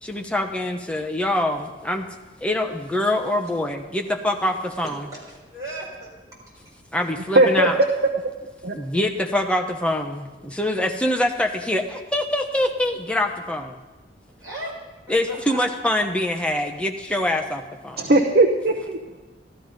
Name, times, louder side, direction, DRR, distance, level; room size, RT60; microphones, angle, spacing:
voice 1, 0.0-2.1 2.4-5.1 6.9-7.8 8.7-13.8 15.1-18.1, left 1 dB, 5° left, 3 dB, 0.9 m, -24 dB
voice 2, 4.8-6.7 14.4-14.8 15.3-15.6, right 1 dB, 20° right, -5 dB, 4.3 m, -37 dB
voice 3, 7.3-7.7 8.6-8.7 18.0-19.2, right 2 dB, 55° right, 2 dB, 0.9 m, -18 dB
13.5 x 12.5 x 5.2 m, 1.2 s
head